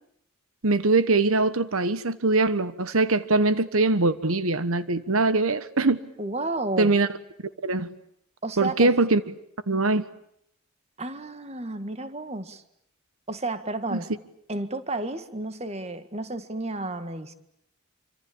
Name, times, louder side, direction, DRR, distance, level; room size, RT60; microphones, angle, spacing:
voice 1, 0.6-6.0 6.8-7.1 7.6-7.9 8.6-9.2 9.7-10.0 13.9-14.0, right 3 dB, 90° right, 1.2 m, -22 dB
voice 2, 6.2-7.0 8.4-8.9 11.0-12.6 13.3-14.1 14.5-17.3, right 2 dB, 30° right, 1.8 m, -32 dB
27.0 x 25.5 x 8.7 m
head